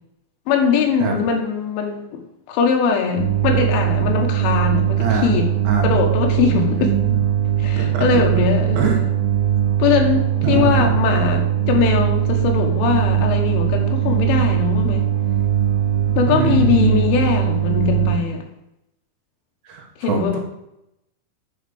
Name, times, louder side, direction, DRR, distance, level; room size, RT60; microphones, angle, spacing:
voice 1, 0.5-2.2 2.5-5.5 5.8-7.0 7.6-9.1 9.8-15.1 16.2-18.5 20.0-20.4, left 6 dB, 85° left, 3 dB, 4.0 m, -21 dB
sound 1, 3.2-18.2, right 11 dB, 85° right, 3.4 m, -20 dB
voice 2, 5.0-5.3 5.7-5.9 6.7-7.2 7.8-8.1 8.3-8.5 8.8-9.0 10.4-10.9 16.3-17.0 19.7-20.4, right 4 dB, 65° right, 2 dB, 3.4 m, -23 dB
9.9 x 5.7 x 7.1 m, 0.85 s
omnidirectional pair, 5.5 m